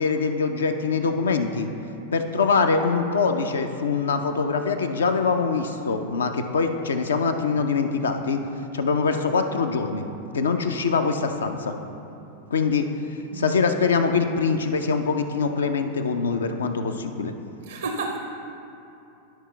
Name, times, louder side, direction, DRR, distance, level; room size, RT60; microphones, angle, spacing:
voice 1, 0.0-1.7 2.1-8.4 8.7-10.1 10.3-11.7 12.5-12.9 13.3-17.3, left 5 dB, 70° left, 7 dB, 0.5 m, -23 dB
voice 2, 17.6-18.2, right 3 dB, 65° right, 4 dB, 0.5 m, -30 dB
12.0 x 5.0 x 3.2 m, 2.9 s
figure-of-eight pair, 90°, 0 cm